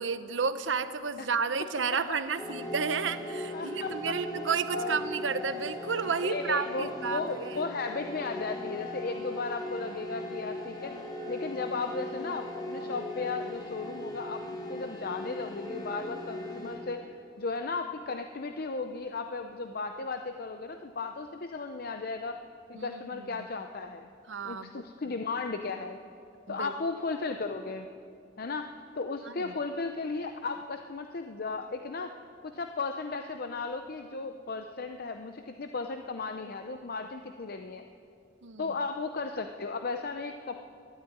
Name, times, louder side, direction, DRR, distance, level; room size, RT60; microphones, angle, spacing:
voice 1, 0.0-7.5 22.7-23.4 24.3-24.8 26.5-26.7 29.4-29.5 38.4-38.7, right 5 dB, 85° right, 11 dB, 0.8 m, -32 dB
sound 1, 2.4-17.2, left 1 dB, 25° left, 2.7 m, -38 dB
voice 2, 3.5-3.9 4.4-4.5 4.7-5.0 6.2-10.9 11.3-17.0 17.4-22.4 22.7-24.1 24.4-26.0 26.5-27.9 28.4-32.1 32.4-37.8 38.6-40.6, left 4 dB, 55° left, 6 dB, 0.6 m, -35 dB
12.5 x 12.0 x 9.5 m, 2.4 s
head